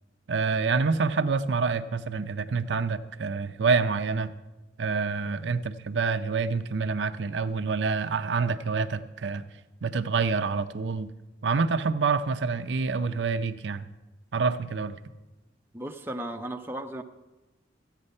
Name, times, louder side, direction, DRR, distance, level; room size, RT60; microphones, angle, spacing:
voice 1, 0.3-4.3 4.8-9.5 9.8-11.1 11.4-13.9 14.3-15.0, right 4 dB, 90° right, 9 dB, 0.6 m, -27 dB
voice 2, 15.7-17.0, right 1 dB, 15° right, 4 dB, 0.6 m, -35 dB
14.5 x 9.0 x 5.4 m, 1.1 s
head